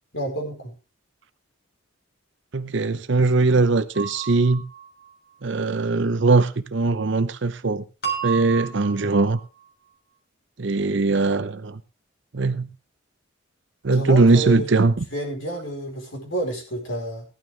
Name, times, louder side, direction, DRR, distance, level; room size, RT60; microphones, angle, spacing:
voice 1, 0.1-0.7 13.9-14.7 15.1-17.2, right 1 dB, 65° left, 4.8 m, -29 dB
voice 2, 2.5-4.6 5.4-7.8 8.2-9.4 10.6-11.8 12.3-12.7 13.8-14.9, right 3 dB, 60° right, 0.7 m, -20 dB
sound 1, 3.9-5.1 8.0-9.4, right 8 dB, 45° left, 3.4 m, -32 dB
15.5 x 11.5 x 3.3 m
head